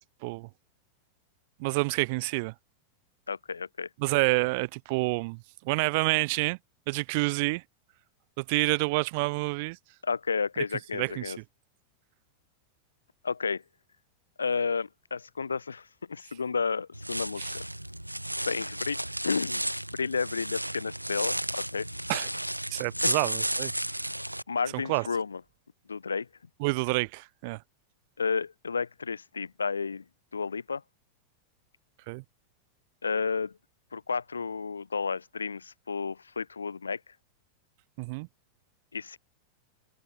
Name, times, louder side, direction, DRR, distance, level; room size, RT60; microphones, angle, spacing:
voice 1, 1.6-2.5 4.0-6.6 6.9-7.6 8.4-9.8 10.9-11.3 17.4-17.5 22.1-22.3 22.7-23.7 24.7-25.1 26.6-27.6 32.1-32.2 38.0-38.3, right 27 dB, 50° right, 0.8 m, -28 dB
voice 2, 3.3-3.9 10.0-11.4 13.2-13.6 14.4-17.6 18.4-19.0 19.2-19.7 20.0-21.9 23.0-23.2 24.5-25.4 25.9-26.3 28.2-30.0 30.3-30.8 33.0-33.5 33.9-37.0 38.9-39.2, left 5 dB, 75° left, 0.4 m, -31 dB
sound 1, 16.9-24.4, right 1 dB, 90° right, 0.3 m, -33 dB
figure-of-eight pair, 90°, 0 cm